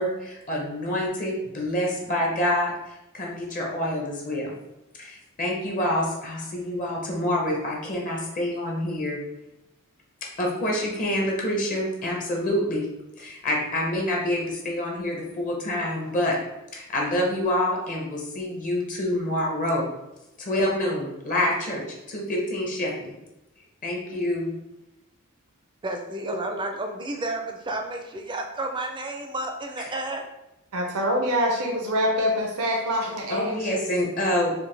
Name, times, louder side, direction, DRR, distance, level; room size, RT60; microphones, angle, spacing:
voice 1, 0.0-4.5 5.0-9.2 10.4-12.9 13.2-16.4 16.7-19.9 20.4-23.1 23.8-24.5 33.3-34.5, left 1 dB, 35° left, -1 dB, 0.7 m, -27 dB
voice 2, 25.8-30.3, right 2 dB, 20° right, 3 dB, 0.4 m, -31 dB
voice 3, 30.7-33.8, equal, 90° right, 0 dB, 0.6 m, -25 dB
4.5 x 2.1 x 3.3 m, 0.94 s
head